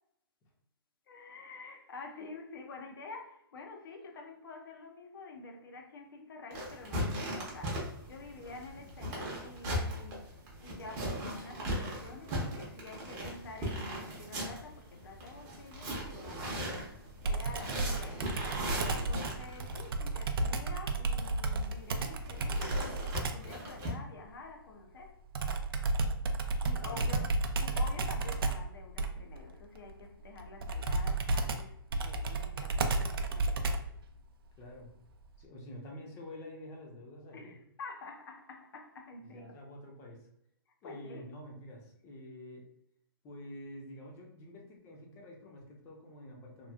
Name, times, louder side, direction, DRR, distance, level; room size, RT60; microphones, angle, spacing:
voice 1, 1.1-10.2 10.6-16.9 17.2-18.3 18.6-25.2 26.6-27.3 27.6-33.6 37.3-39.5 40.8-41.3, left 3 dB, 65° left, 3 dB, 0.7 m, -48 dB
sound 1, 6.5-19.9 21.6-23.9, equal, 25° right, 0.8 m, -38 dB
Computer keyboard, 17.3-23.5 25.3-34.0, right 2 dB, 70° right, 0.4 m, -32 dB
voice 2, 26.8-27.2 34.6-34.9 35.4-37.6 39.2-40.3 40.8-42.6 43.2-46.7, left 1 dB, 20° left, 0 dB, 0.6 m, -48 dB
3.0 x 2.4 x 2.3 m, 0.75 s
hypercardioid pair, 150°, 12 cm